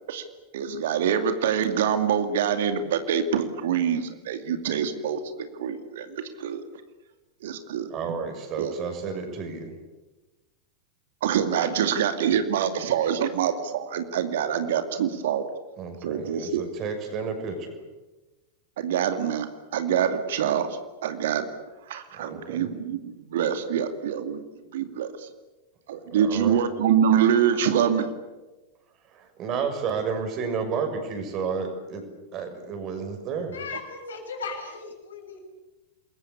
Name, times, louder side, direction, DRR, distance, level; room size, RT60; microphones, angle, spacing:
voice 1, 0.5-6.6 7.4-7.9 8.6-8.8 11.2-15.4 16.0-16.6 18.8-19.5 19.7-20.7 21.0-21.5 21.9-24.4 24.7-25.3 25.9-28.1, right 8 dB, 55° right, 8 dB, 2.4 m, -25 dB
voice 2, 7.9-9.7 15.8-17.8 22.2-22.6 26.2-26.6 29.1-32.0 32.3-33.6, right 5 dB, 35° right, 6 dB, 6.3 m, -31 dB
voice 3, 33.5-35.4, left 4 dB, 65° left, 4 dB, 6.7 m, -37 dB
27.5 x 22.0 x 8.4 m, 1.1 s
figure-of-eight pair, 90°, 0 cm